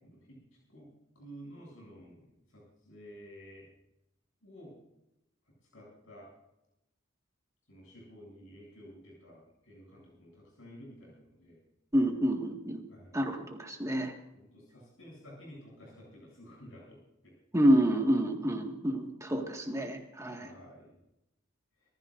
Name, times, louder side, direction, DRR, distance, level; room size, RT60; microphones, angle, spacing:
voice 1, 0.0-0.4 0.7-0.9 1.1-2.2 2.5-3.7 4.4-4.8 5.7-6.3 7.7-11.6 12.9-13.2 14.3-17.3 20.3-20.9, equal, 70° left, -4 dB, 7.9 m, -52 dB
voice 2, 11.9-12.8 13.1-14.1 17.5-20.5, right 1 dB, 15° right, 2 dB, 1.9 m, -28 dB
27.0 x 15.0 x 2.6 m, 0.87 s
head